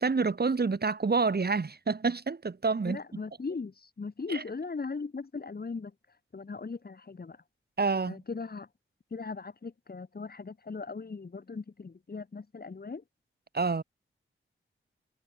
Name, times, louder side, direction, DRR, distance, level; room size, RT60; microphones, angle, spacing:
voice 1, 0.0-3.0 4.3-4.4 7.8-8.2 13.5-13.8, right 4 dB, 50° right, 3.9 m, -28 dB
voice 2, 2.9-5.9 6.3-7.4 8.1-8.7 9.1-13.0, left 4 dB, 45° left, 2.6 m, -38 dB
wide cardioid pair, 85°, 21 cm